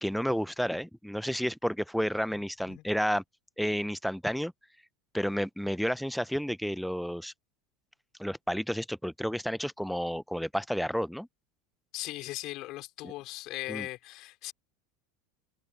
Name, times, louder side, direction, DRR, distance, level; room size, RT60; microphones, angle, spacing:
voice 1, 0.0-3.2 3.6-4.5 5.1-7.3 8.2-11.3 13.0-13.1 13.7-13.9, equal, ahead, 0.9 m, -31 dB
voice 2, 11.9-14.5, left 18 dB, 55° left, 4.6 m, -38 dB
hypercardioid pair, 85°, 0 cm